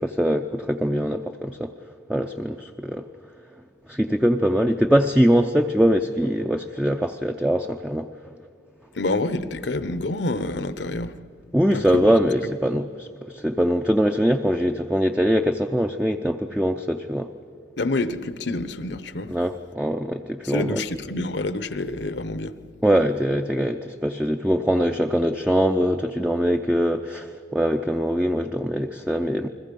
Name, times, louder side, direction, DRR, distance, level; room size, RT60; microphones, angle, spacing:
voice 1, 0.0-1.7 2.1-3.0 3.9-8.1 11.5-17.3 19.3-20.8 22.8-29.5, equal, 5° right, 4 dB, 0.5 m, -22 dB
voice 2, 8.9-11.1 11.7-12.1 17.8-19.3 20.4-22.5, left 2 dB, 65° left, 14 dB, 0.9 m, -27 dB
29.5 x 21.0 x 5.4 m, 2.2 s
head